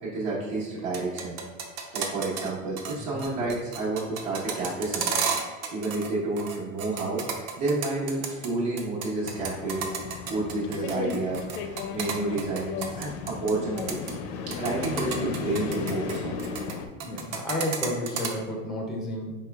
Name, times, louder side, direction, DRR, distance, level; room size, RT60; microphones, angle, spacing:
voice 1, 0.0-1.4 1.9-9.8 10.2-14.1 14.6-16.4, right 2 dB, 65° right, -8 dB, 1.2 m, -30 dB
sound 1, 0.8-2.5 2.8-2.9 3.2-6.1 6.4-8.5 8.8-13.5 13.8-14.1 14.5-16.7 17.0-18.3, right 6 dB, 45° right, 0.6 m, -32 dB
sound 2, 9.2-16.9, left 5 dB, 70° left, 0.5 m, -35 dB
voice 2, 17.0-19.3, left 1 dB, ahead, -1 dB, 0.4 m, -31 dB
4.7 x 3.2 x 2.3 m, 1.3 s
supercardioid pair, 135°, 38 cm